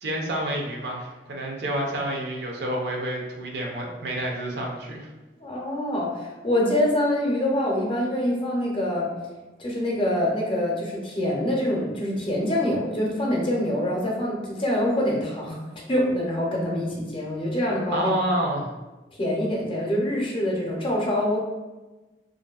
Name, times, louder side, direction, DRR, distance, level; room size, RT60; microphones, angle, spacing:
voice 1, 0.0-5.1 17.9-18.7, right 1 dB, 65° right, 0 dB, 0.5 m, -28 dB
voice 2, 5.4-9.1 9.6-15.6 15.9-18.1 19.2-21.4, left 1 dB, 30° left, -3 dB, 0.6 m, -25 dB
2.6 x 2.5 x 2.3 m, 1.1 s
head